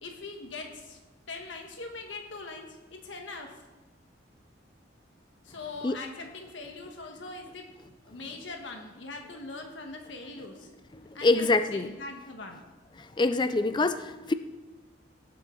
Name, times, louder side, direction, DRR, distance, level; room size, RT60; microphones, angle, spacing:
voice 1, 0.0-1.0 1.3-3.5 5.4-7.7 8.1-10.7 11.1-12.6, left 3 dB, 70° left, 3 dB, 1.4 m, -41 dB
voice 2, 10.9-11.9 13.0-14.3, left 2 dB, 25° left, 11 dB, 0.4 m, -25 dB
17.5 x 7.6 x 3.8 m, 1.1 s
head